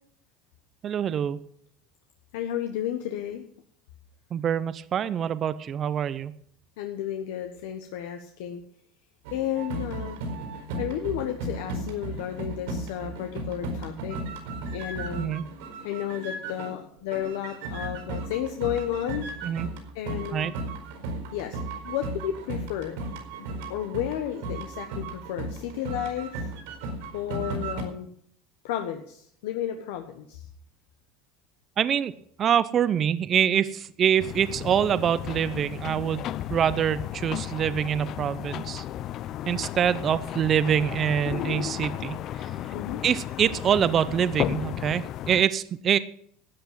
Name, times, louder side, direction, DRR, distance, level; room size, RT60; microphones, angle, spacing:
voice 1, 0.8-1.4 4.3-6.3 15.2-15.5 19.4-19.7 20.3-20.5 31.8-32.1 32.4-38.8 39.5-42.2 43.0-46.0, right 9 dB, 35° right, 15 dB, 0.7 m, -25 dB
voice 2, 2.3-3.4 6.8-8.6 9.3-10.2 10.8-14.2 14.7-15.3 15.8-19.3 19.9-20.6 21.3-21.6 21.8-23.0 23.4-26.5 27.1-28.1 28.6-30.4 42.7-43.0 44.6-44.9, left 11 dB, 85° left, 5 dB, 1.2 m, -32 dB
sound 1, 9.2-16.9 17.1-27.8, right 2 dB, 85° right, 4.7 m, -35 dB
sound 2, 34.2-45.4, left 12 dB, 45° left, 0.5 m, -34 dB
13.0 x 8.6 x 7.5 m, 0.65 s
supercardioid pair, 135°, 0 cm